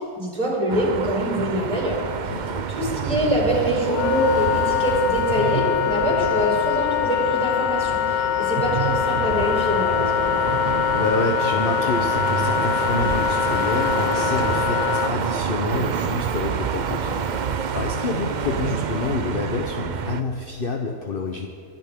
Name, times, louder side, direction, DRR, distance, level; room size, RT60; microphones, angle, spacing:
voice 1, 0.2-2.4 2.7-10.3, right 1 dB, 25° right, -3 dB, 5.0 m, -24 dB
sound 1, 0.7-20.2, right 7 dB, 90° right, 0.4 m, -28 dB
voice 2, 2.3-2.6 10.9-17.2 17.5-21.5, left 3 dB, 45° left, 2 dB, 1.0 m, -28 dB
Wind instrument woodwind instrument, 3.9-15.1, left 10 dB, 65° left, 0.7 m, -23 dB
23.5 x 12.0 x 3.7 m, 2.2 s
omnidirectional pair, 1.6 m